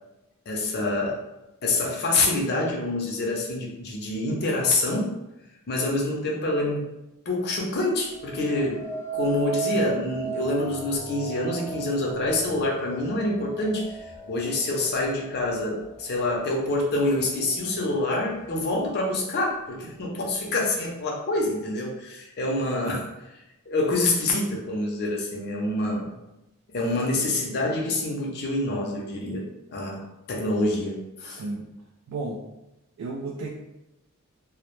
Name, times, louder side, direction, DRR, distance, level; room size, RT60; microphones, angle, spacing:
voice 1, 0.5-1.2 1.6-5.1 5.7-6.9 7.3-14.0 14.3-23.1 23.7-26.1 26.7-29.4 29.7-31.4, left 2 dB, 45° left, -2 dB, 0.5 m, -26 dB
sound 1, 8.1-17.3 17.8-18.3, right 5 dB, 30° right, 0.9 m, -36 dB
voice 2, 32.1-32.4 33.0-33.5, right 3 dB, 65° right, 0 dB, 0.3 m, -32 dB
2.1 x 2.0 x 2.9 m, 0.93 s
head